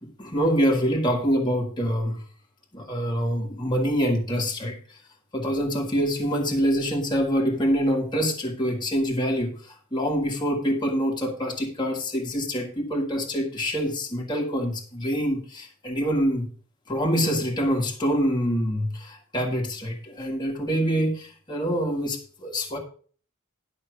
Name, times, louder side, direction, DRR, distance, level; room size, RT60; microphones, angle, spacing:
voice 1, 0.2-2.2 2.7-4.8 5.3-9.5 9.9-16.5 16.9-22.8, equal, 20° left, 0 dB, 1.8 m, -25 dB
11.5 x 5.8 x 5.0 m, 0.43 s
head